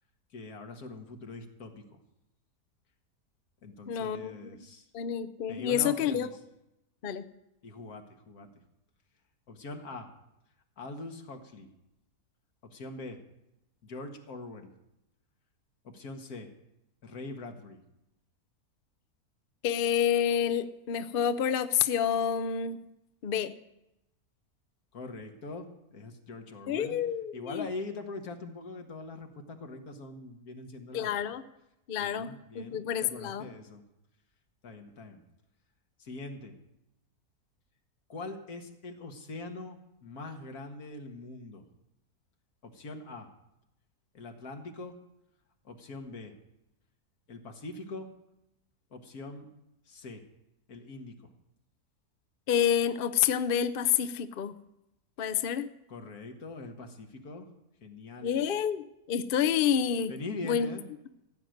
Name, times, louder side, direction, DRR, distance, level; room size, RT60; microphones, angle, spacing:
voice 1, 0.3-2.0 3.6-4.9 5.5-6.3 7.6-8.5 9.5-10.1 10.8-11.7 12.6-13.2 13.8-14.7 15.8-16.5 17.0-17.8 24.9-27.0 27.3-31.2 32.0-33.8 34.6-35.2 36.0-36.6 38.1-41.6 42.6-43.3 44.1-44.9 45.6-46.4 47.3-48.1 48.9-49.5 49.9-50.2 50.7-51.3 55.9-57.5 57.8-58.4 60.1-60.8, left 3 dB, 75° left, 5 dB, 1.9 m, -42 dB
voice 2, 3.9-4.3 4.9-6.3 7.0-7.3 19.6-22.8 23.2-23.5 26.7-27.7 30.9-31.4 31.9-33.5 52.5-54.6 55.2-55.7 58.2-60.1 60.4-60.7, left 9 dB, 55° left, 10 dB, 0.6 m, -28 dB
15.0 x 6.4 x 9.3 m, 0.88 s
omnidirectional pair, 1.6 m